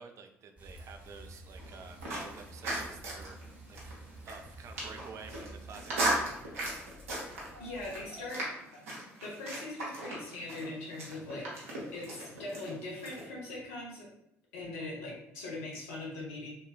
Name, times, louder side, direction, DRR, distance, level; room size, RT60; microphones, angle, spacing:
voice 1, 0.0-3.4 3.7-3.9 4.2-6.5, right 5 dB, 45° right, 5 dB, 0.4 m, -50 dB
Bicycle, 0.6-8.3, right 1 dB, 15° right, 0.9 m, -51 dB
sound 1, 1.6-13.2, right 1 dB, 80° right, 0.7 m, -38 dB
voice 2, 7.6-8.5 9.2-14.1 14.5-16.5, left 2 dB, 70° left, -4 dB, 0.8 m, -41 dB
3.0 x 2.2 x 2.2 m, 0.79 s
figure-of-eight pair, 50°, 7 cm